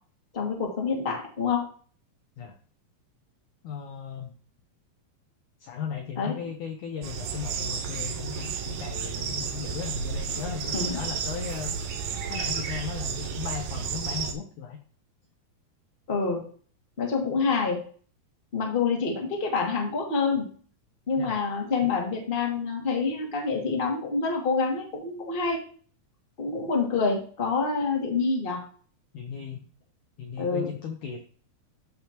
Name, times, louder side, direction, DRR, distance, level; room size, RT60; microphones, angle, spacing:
voice 1, 0.3-1.7 6.1-6.3 10.7-11.0 16.1-16.4 17.0-17.8 18.5-20.5 21.1-25.6 26.4-28.6 30.4-30.7, left 4 dB, 20° left, -1 dB, 1.5 m, -27 dB
voice 2, 3.6-4.3 5.6-11.7 12.3-14.8 21.2-21.4 29.1-29.6 30.2-31.2, left 7 dB, 70° left, 3 dB, 1.9 m, -36 dB
sound 1, 7.0-14.3, right 6 dB, 75° right, 1.7 m, -32 dB
13.5 x 5.6 x 3.0 m, 0.42 s
omnidirectional pair, 4.6 m